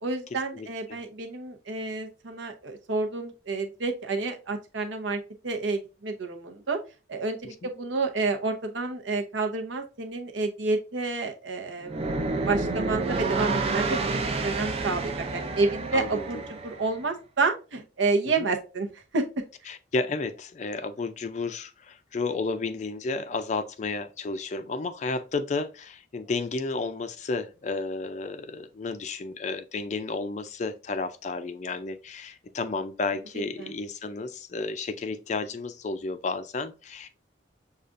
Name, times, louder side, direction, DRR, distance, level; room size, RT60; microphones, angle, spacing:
voice 1, 0.0-6.8 7.1-19.2 33.6-33.7, right 3 dB, 80° right, 0.8 m, -29 dB
voice 2, 0.5-1.0 7.4-7.5 15.9-16.2 18.4-18.5 19.7-37.1, left 3 dB, 40° left, 0.3 m, -32 dB
sound 1, 11.8-16.9, right 3 dB, 30° right, 0.5 m, -29 dB
6.5 x 2.4 x 2.5 m
head